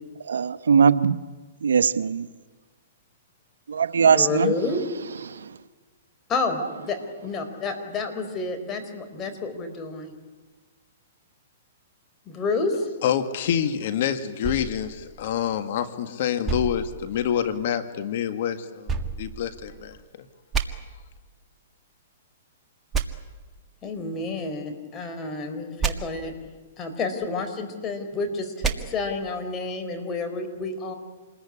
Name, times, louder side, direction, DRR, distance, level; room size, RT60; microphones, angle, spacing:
voice 1, 0.3-1.2 1.6-2.3 3.7-4.5 5.2-5.6, right 6 dB, 85° right, 1.0 m, -20 dB
voice 2, 4.0-4.8 6.3-10.1 12.3-12.9 23.8-26.3 26.8-30.9, left 3 dB, 25° left, 4.5 m, -29 dB
voice 3, 13.0-20.0, left 9 dB, 55° left, 1.8 m, -27 dB
sound 1, 14.4-15.9 16.4-17.7 18.9-20.0 20.5-20.6 22.9-23.0 25.8-25.9 28.6-28.7, right 6 dB, 15° right, 1.9 m, -30 dB
28.0 x 21.0 x 9.9 m
hypercardioid pair, 140°, 0 cm